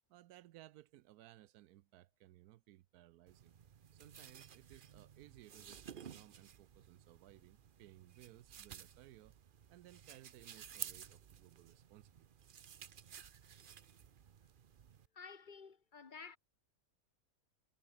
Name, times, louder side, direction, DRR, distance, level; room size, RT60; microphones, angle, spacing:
voice 1, 0.1-3.5 3.9-9.4 9.7-12.3, right 14 dB, 90° right, 1.1 m, -60 dB
sound 1, 3.3-15.1, right 8 dB, 45° right, 0.7 m, -54 dB
voice 2, 15.1-16.4, left 5 dB, 35° left, 1.2 m, -52 dB
omnidirectional pair, 1.6 m